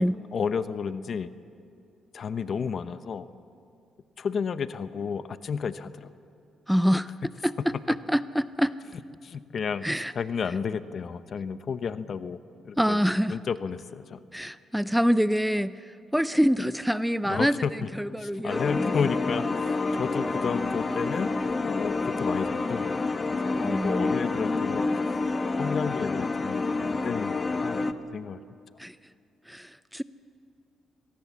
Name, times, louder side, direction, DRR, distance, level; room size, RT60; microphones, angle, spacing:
voice 1, 0.0-1.3 2.1-3.3 4.2-6.1 9.2-9.8 10.1-12.4 12.6-13.0 13.3-14.2 17.2-17.9 18.2-21.3 21.6-25.0 25.6-28.4, left 6 dB, 50° left, 13 dB, 0.9 m, -32 dB
voice 2, 6.7-7.1 7.4-8.7 9.8-10.1 12.8-13.4 14.3-15.8 16.1-17.6 18.0-19.0 23.6-24.1 28.8-28.9 29.5-30.0, equal, ahead, 15 dB, 0.5 m, -26 dB
sound 1, 18.5-27.9, left 3 dB, 30° left, 1.0 m, -28 dB
25.0 x 19.0 x 7.4 m, 2.4 s
cardioid pair, 90°, 0 cm